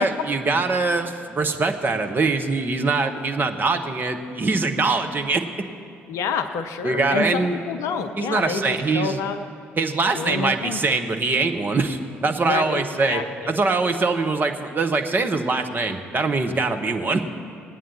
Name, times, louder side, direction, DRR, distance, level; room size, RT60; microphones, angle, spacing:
voice 1, 0.0-5.4 6.8-7.6 8.2-9.2 9.8-17.2, right 3 dB, 30° right, 5 dB, 0.9 m, -23 dB
voice 2, 6.1-9.4 10.1-10.8 12.5-13.5, left 5 dB, 55° left, 11 dB, 0.6 m, -28 dB
18.5 x 9.0 x 4.3 m, 2.3 s
figure-of-eight pair, 45°, 6 cm